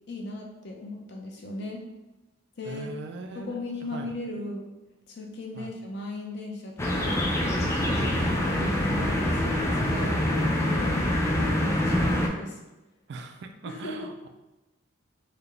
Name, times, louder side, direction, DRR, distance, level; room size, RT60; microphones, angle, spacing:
voice 1, 0.1-1.8 2.6-2.9 3.3-4.7 5.1-7.3 8.0-12.6 13.7-14.1, left 1 dB, 55° left, 0 dB, 0.6 m, -37 dB
voice 2, 2.7-3.6 3.9-4.1 5.6-5.7 7.9-8.4 13.1-14.3, right 3 dB, 60° right, 6 dB, 0.3 m, -40 dB
sound 1, 6.8-12.3, left 1 dB, 15° left, 0.3 m, -25 dB
3.8 x 2.2 x 3.3 m, 1.0 s
head